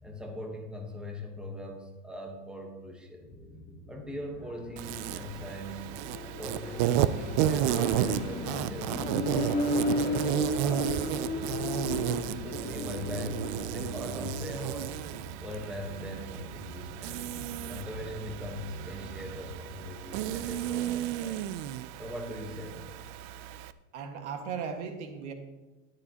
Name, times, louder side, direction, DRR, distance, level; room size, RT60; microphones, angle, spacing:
voice 1, 0.0-3.3 3.9-5.9 6.4-11.3 11.8-14.9 15.4-17.2 17.7-21.4 22.0-23.0, left 1 dB, 5° right, 1 dB, 1.1 m, -41 dB
sound 1, 3.2-19.9, left 1 dB, 55° left, 2.9 m, -46 dB
Accelerating revving vroom, 4.3-14.8, left 1 dB, 30° left, 3.2 m, -35 dB
Insect, 4.8-23.7, right 11 dB, 45° right, 0.4 m, -33 dB
voice 2, 23.9-25.3, right 6 dB, 90° right, 5 dB, 1.7 m, -37 dB
13.5 x 10.5 x 2.9 m, 1.2 s
supercardioid pair, 165°, 34 cm